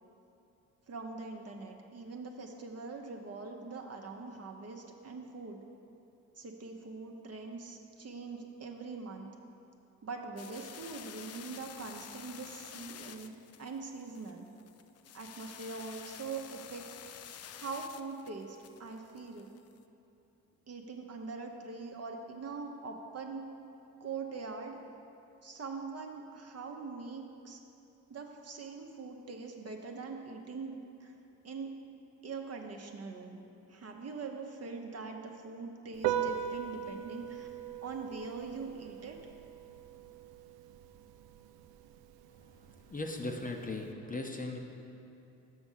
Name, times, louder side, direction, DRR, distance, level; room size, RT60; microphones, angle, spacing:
voice 1, 0.9-5.6 6.4-9.3 10.0-14.5 15.1-16.9 17.5-19.5 20.7-23.5 24.0-24.8 25.4-27.6 28.1-31.1 31.4-31.7 32.2-33.4 33.7-37.5 37.8-39.2, right 4 dB, 40° right, 2 dB, 0.9 m, -43 dB
sound 1, 10.4-19.8, left 9 dB, 40° left, 0.4 m, -50 dB
Piano, 35.9-43.9, right 10 dB, 70° right, 0.5 m, -40 dB
voice 2, 42.9-44.6, left 2 dB, 20° left, 2 dB, 0.8 m, -37 dB
6.3 x 6.1 x 5.6 m, 2.8 s
hypercardioid pair, 50°, 39 cm